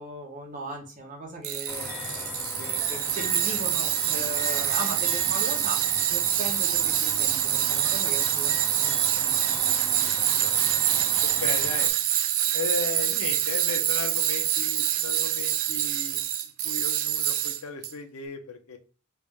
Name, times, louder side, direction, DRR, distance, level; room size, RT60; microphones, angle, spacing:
voice 1, 0.0-2.3 2.6-9.4, right 1 dB, 35° right, 0 dB, 0.9 m, -38 dB
Tools, 1.4-17.9, right 12 dB, 65° right, 0.4 m, -26 dB
sound 1, 1.7-11.9, left 1 dB, 10° left, 0.6 m, -36 dB
voice 2, 10.0-10.6 11.2-11.9 12.5-16.2 16.6-18.8, left 5 dB, 85° left, 6 dB, 0.6 m, -36 dB
3.3 x 2.6 x 3.3 m, 0.35 s
head